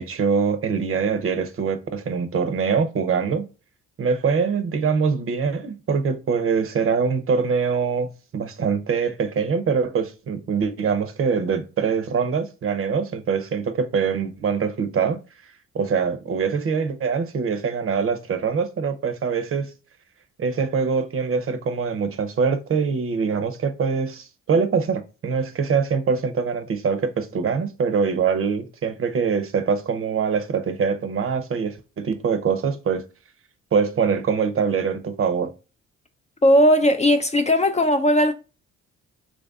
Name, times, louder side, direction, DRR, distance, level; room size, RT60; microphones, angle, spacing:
voice 1, 0.0-3.5 4.0-15.2 15.7-19.7 20.4-33.0 33.7-35.5, right 5 dB, 45° right, 0.7 m, -23 dB
voice 2, 36.4-38.3, equal, 25° left, 0.4 m, -17 dB
3.2 x 2.6 x 3.4 m
cardioid pair, 90°, 30 cm